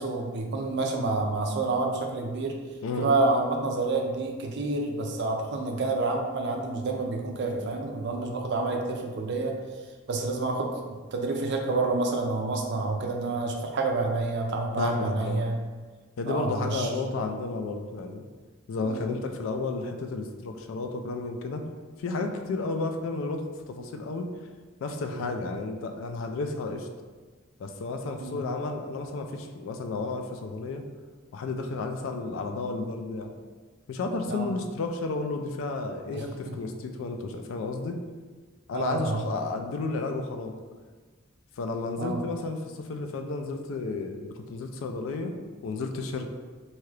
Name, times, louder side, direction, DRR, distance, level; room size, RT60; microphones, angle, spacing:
voice 1, 0.0-2.6 3.0-9.5 10.1-10.7 11.1-15.6 16.3-16.9 18.8-19.1 21.6-21.8 25.1-25.3 28.2-28.4 34.3-34.5 36.1-36.5 38.7-39.2 42.0-42.2, right 3 dB, 55° right, 2 dB, 0.4 m, -28 dB
voice 2, 14.8-15.4 16.2-18.2 18.7-21.6 22.0-23.4 23.7-24.3 24.8-26.9 27.6-30.8 31.3-33.3 33.9-38.0 38.7-40.6 41.6-45.3 45.6-46.3, left 3 dB, 65° left, 5 dB, 0.3 m, -32 dB
2.7 x 2.3 x 3.2 m, 1.4 s
head